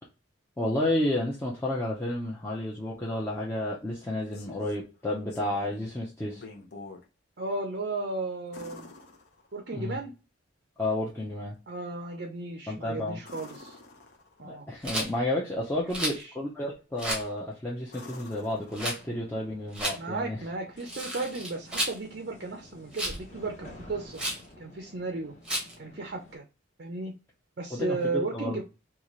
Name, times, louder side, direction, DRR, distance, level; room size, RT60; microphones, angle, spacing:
voice 1, 0.6-6.4 9.7-10.0 10.8-11.6 12.7-13.2 14.4-20.4 27.7-28.6, left 1 dB, 10° left, -5 dB, 0.6 m, -31 dB
sound 1, 4.0-4.8 5.3-5.9 6.3-7.1 8.5-9.8 13.2-14.5 17.0-17.4 17.9-19.3 21.4-21.5, left 3 dB, 50° left, 0.7 m, -47 dB
voice 2, 7.4-8.9 9.5-10.1 11.7-13.8 14.4-14.7 16.0-16.3 19.9-24.2 24.6-25.3 25.8-26.4 26.8-27.1 27.6-28.6, right 3 dB, 50° right, 3 dB, 0.5 m, -34 dB
Rattle, 14.8-15.1 15.9-16.2 17.0-17.3 18.7-19.0 19.7-20.0 20.8-22.0 22.9-23.2 24.1-24.4 25.4-25.7, right 1 dB, 5° right, 0.9 m, -32 dB
sound 2, 18.3-26.4, left 2 dB, 35° left, 1.2 m, -51 dB
4.0 x 2.4 x 3.0 m, 0.30 s
head